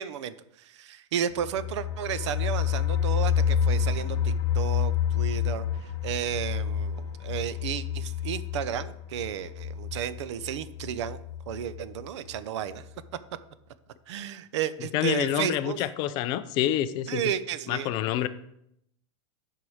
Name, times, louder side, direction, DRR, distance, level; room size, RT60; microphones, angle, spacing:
voice 1, 0.0-11.2 11.5-12.9 14.1-15.8 17.1-17.9, right 9 dB, 60° right, 14 dB, 0.7 m, -33 dB
sound 1, 1.3-12.0 12.3-12.4 12.8-12.9, left 8 dB, 55° left, 1.1 m, -29 dB
voice 2, 14.9-17.2 17.7-18.3, left 12 dB, 25° left, 12 dB, 0.4 m, -27 dB
7.9 x 4.8 x 7.1 m, 0.76 s
supercardioid pair, 165°, 16 cm